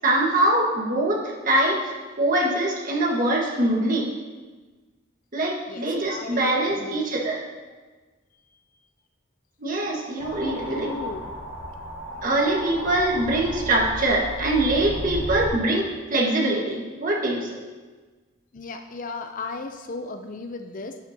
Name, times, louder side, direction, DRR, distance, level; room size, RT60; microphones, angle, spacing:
voice 1, 0.0-4.1 5.3-7.4 9.6-10.9 12.2-17.5, right 1 dB, 40° right, -2 dB, 1.4 m, -23 dB
voice 2, 5.7-6.5 6.8-7.1 10.4-11.2 18.5-21.0, left 3 dB, 40° left, 6 dB, 0.5 m, -35 dB
sound 1, 10.2-15.5, equal, 75° left, 1.4 m, -34 dB
11.0 x 8.5 x 2.8 m, 1.3 s
head